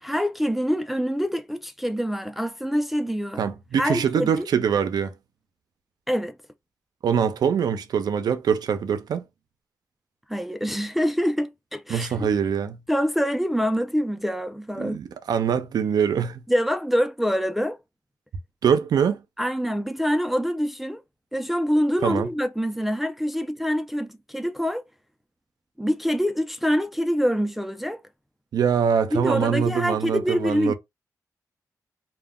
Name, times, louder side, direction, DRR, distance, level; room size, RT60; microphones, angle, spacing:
voice 1, 0.0-3.4 3.8-4.5 6.1-6.3 10.3-12.2 12.9-15.0 16.5-17.8 19.4-21.0 21.3-24.8 25.8-28.0 29.1-30.7, equal, ahead, 0.3 m, -25 dB
voice 2, 3.4-5.1 7.0-9.2 11.9-12.8 14.8-16.4 18.6-19.2 22.0-22.3 28.5-30.7, right 7 dB, 85° right, 0.5 m, -23 dB
2.2 x 2.1 x 3.4 m
cardioid pair, 75°, 7 cm